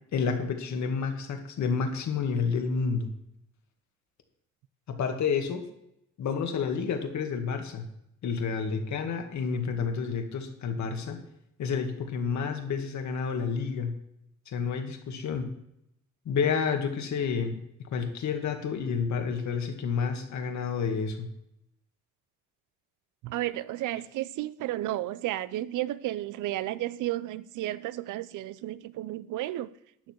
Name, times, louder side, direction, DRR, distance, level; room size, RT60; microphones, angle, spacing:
voice 1, 0.1-3.1 4.9-5.6 6.2-7.9 8.2-11.2 11.6-14.0 14.5-15.5 16.3-17.6 17.9-21.3, left 5 dB, 65° left, 2.2 m, -30 dB
voice 2, 23.2-29.7, right 15 dB, 85° right, 0.7 m, -32 dB
13.0 x 9.4 x 4.6 m
cardioid pair, 90°, 30 cm